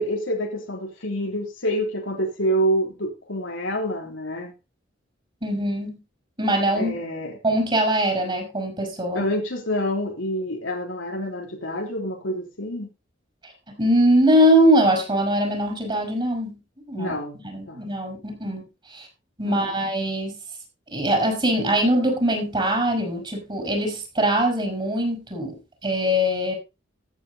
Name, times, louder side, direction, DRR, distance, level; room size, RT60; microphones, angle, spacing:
voice 1, 0.0-4.5 6.8-7.4 9.1-12.9 16.9-17.4 17.7-17.8 19.4-19.8, equal, 85° left, 3.2 m, -27 dB
voice 2, 5.4-6.0 6.4-6.9 7.4-9.2 13.7-16.6 16.9-17.1 17.5-18.6 18.9-19.1 19.4-20.4 20.9-25.6 25.8-26.6, equal, 25° right, 4.7 m, -22 dB
14.0 x 8.5 x 3.8 m
head